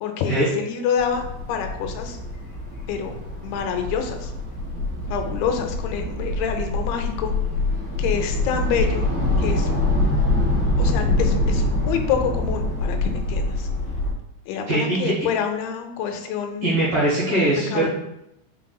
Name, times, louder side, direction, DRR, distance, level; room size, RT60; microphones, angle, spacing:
voice 1, 0.0-2.2 2.9-3.1 3.4-4.3 5.1-7.3 8.0-9.1 9.4-9.7 10.8-13.7 14.5-16.8 17.4-17.9, left 7 dB, 85° left, 5 dB, 2.5 m, -27 dB
sound 1, 1.0-14.1, left 2 dB, 55° left, 1.6 m, -24 dB
voice 2, 14.7-15.1 16.6-17.9, right 1 dB, 75° right, -9 dB, 1.3 m, -21 dB
5.9 x 3.7 x 2.3 m, 0.84 s
omnidirectional pair, 4.4 m